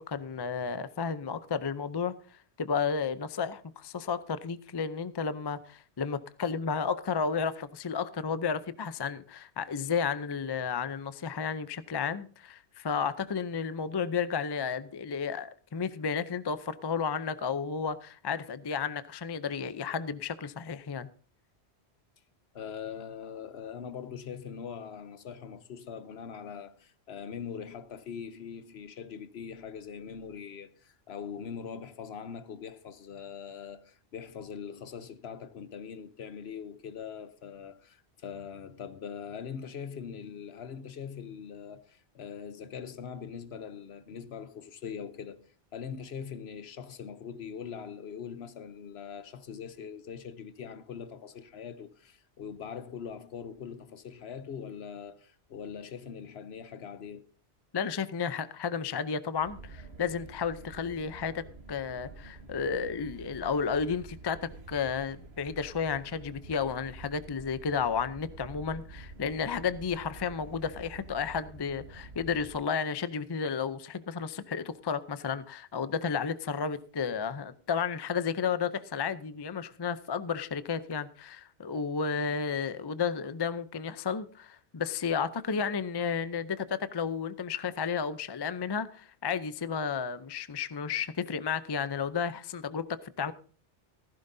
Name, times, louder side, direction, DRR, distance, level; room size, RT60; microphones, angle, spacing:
voice 1, 0.0-2.1 2.6-21.1 57.7-93.3, left 6 dB, 30° left, 0.4 m, -32 dB
voice 2, 22.5-57.2, left 7 dB, 65° left, 1.0 m, -42 dB
sound 1, 59.4-72.6, right 3 dB, 65° right, 1.6 m, -48 dB
15.5 x 14.5 x 2.7 m
omnidirectional pair, 1.2 m